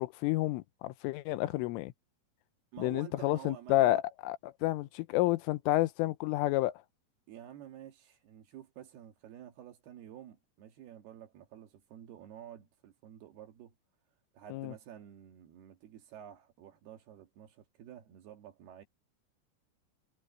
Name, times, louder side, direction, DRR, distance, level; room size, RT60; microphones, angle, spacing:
voice 1, 0.0-1.9 2.8-6.7 14.5-14.7, left 17 dB, 85° left, 3.3 m, -30 dB
voice 2, 2.7-4.0 7.3-13.7 14.3-18.8, right 10 dB, 60° right, 3.2 m, -50 dB
omnidirectional pair, 5.7 m